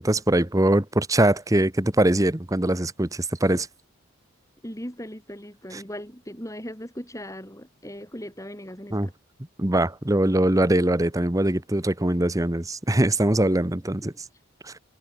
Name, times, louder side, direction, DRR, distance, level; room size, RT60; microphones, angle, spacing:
voice 1, 0.0-3.7 5.7-5.8 8.9-9.1 9.6-14.1 14.6-14.7, right 1 dB, 15° right, 1.0 m, -22 dB
voice 2, 4.6-9.1 14.0-14.2, equal, 15° left, 7.7 m, -38 dB
head